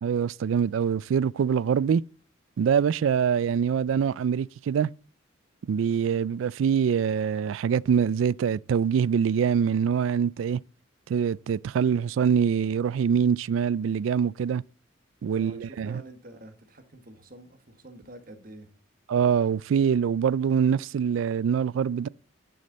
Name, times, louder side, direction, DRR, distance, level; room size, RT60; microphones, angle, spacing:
voice 1, 0.0-2.0 2.6-4.9 5.7-10.6 11.1-14.6 15.2-16.0 19.1-22.1, right 7 dB, 80° right, 0.3 m, -24 dB
voice 2, 15.3-18.7, right 1 dB, 45° right, 1.6 m, -47 dB
11.0 x 6.5 x 4.0 m
head